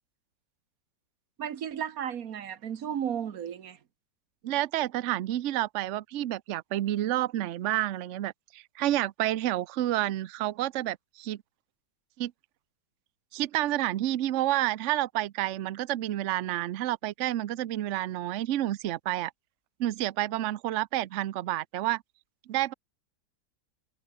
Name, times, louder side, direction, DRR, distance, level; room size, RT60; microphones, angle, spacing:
voice 1, 1.4-3.8, right 9 dB, 55° right, 1.4 m, -34 dB
voice 2, 4.4-11.4 12.2-12.3 13.3-19.3 19.8-22.0 22.5-22.7, right 14 dB, 85° right, 0.6 m, -29 dB
omnidirectional pair, 2.0 m